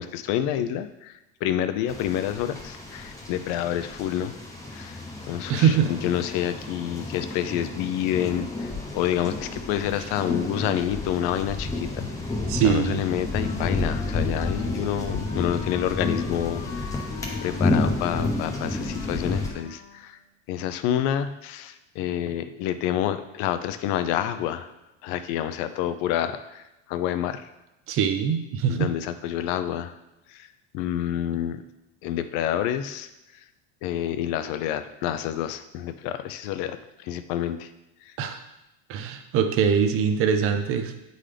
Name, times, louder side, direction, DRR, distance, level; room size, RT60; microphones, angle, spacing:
voice 1, 0.0-4.3 4.7-12.1 12.6-17.0 17.4-20.2 20.5-24.7 25.0-27.5 28.7-29.9 30.3-30.5 30.7-31.6 32.0-33.1 33.8-37.7 38.0-38.1, left 11 dB, 55° left, 11 dB, 0.5 m, -28 dB
sound 1, 1.9-19.5, left 2 dB, 10° left, 0.9 m, -31 dB
voice 2, 5.5-5.9 12.5-13.0 27.9-28.9 38.2-38.4 38.9-41.1, right 7 dB, 40° right, 7 dB, 0.6 m, -23 dB
Wind instrument woodwind instrument, 12.9-20.2, left 7 dB, 75° left, 1.2 m, -42 dB
8.6 x 3.9 x 3.3 m, 0.96 s
cardioid pair, 150°, 37 cm